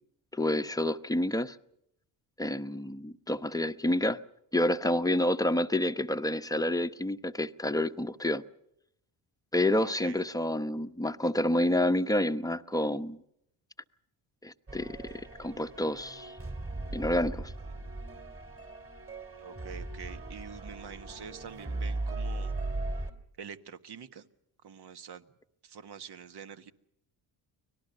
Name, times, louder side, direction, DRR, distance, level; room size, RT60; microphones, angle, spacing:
voice 1, 0.3-1.6 2.4-4.2 4.5-8.4 9.5-13.2 14.4-16.4 16.9-17.5, left 1 dB, 5° left, 0.9 m, -29 dB
voice 2, 9.8-10.2 19.4-22.5 23.4-24.3 24.6-25.3 25.6-26.7, right 7 dB, 50° right, 1.5 m, -46 dB
sound 1, 14.7-23.1, right 2 dB, 25° right, 3.6 m, -38 dB
24.5 x 19.0 x 6.8 m
supercardioid pair, 65°, 49 cm